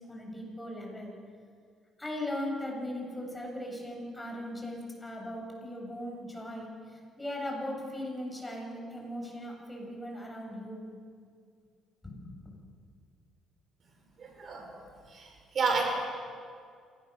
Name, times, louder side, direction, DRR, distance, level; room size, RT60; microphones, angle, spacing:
voice 1, 0.1-1.1 2.0-10.9 12.0-12.3, left 1 dB, 10° left, -1 dB, 7.2 m, -38 dB
voice 2, 14.2-14.7 15.1-15.8, right 4 dB, 50° right, 2 dB, 5.4 m, -31 dB
27.0 x 18.0 x 6.8 m, 2.2 s
cardioid pair, 95°, 0 cm